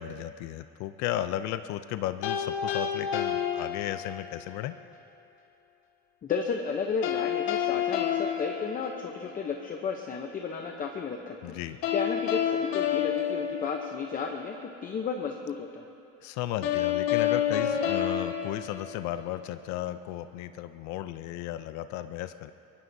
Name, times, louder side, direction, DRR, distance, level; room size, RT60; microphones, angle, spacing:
voice 1, 0.0-4.7 11.4-11.8 16.2-22.5, left 13 dB, 60° left, 11 dB, 0.5 m, -35 dB
sound 1, 2.2-4.4 7.0-9.5 11.8-14.3 16.6-19.4, left 9 dB, 90° left, 1.9 m, -29 dB
voice 2, 6.2-11.6 11.9-15.8, left 5 dB, 25° left, 3 dB, 0.7 m, -33 dB
23.5 x 21.5 x 2.7 m, 2.7 s
cardioid pair, 155°, 32 cm